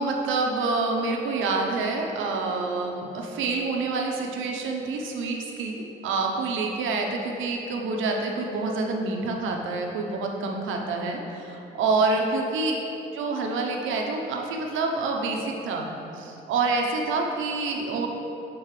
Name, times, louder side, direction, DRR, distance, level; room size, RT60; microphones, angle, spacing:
voice 1, 0.0-12.8 13.1-15.9 16.1-18.1, right 3 dB, 80° right, 1 dB, 0.8 m, -27 dB
7.4 x 4.5 x 3.2 m, 2.9 s
cardioid pair, 90°, 20 cm